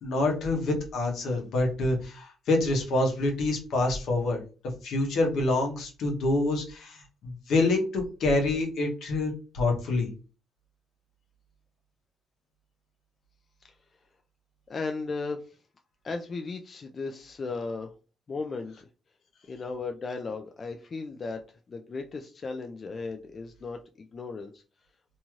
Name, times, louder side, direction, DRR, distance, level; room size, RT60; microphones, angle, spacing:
voice 1, 0.0-4.4 4.8-10.1, left 2 dB, 75° left, 1 dB, 0.9 m, -27 dB
voice 2, 14.7-15.6 16.0-17.9 18.3-18.9 19.5-24.6, left 4 dB, 40° left, 5 dB, 0.3 m, -36 dB
2.6 x 2.3 x 3.0 m, 0.35 s
cardioid pair, 90°, 0 cm